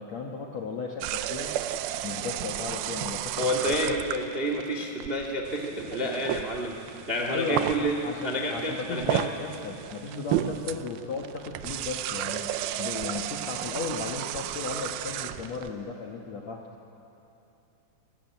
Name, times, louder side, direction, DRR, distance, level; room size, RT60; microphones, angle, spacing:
voice 1, 0.0-1.5 2.0-4.0 7.3-12.5 12.8-16.6, left 4 dB, 70° left, 0 dB, 1.6 m, -35 dB
sound 1, 1.0-15.7, right 12 dB, 80° right, 2.3 m, -33 dB
voice 2, 3.4-6.7 7.1-7.9 8.2-9.2, equal, 60° right, 1 dB, 0.6 m, -29 dB
29.5 x 14.5 x 9.1 m, 3.0 s
omnidirectional pair, 4.9 m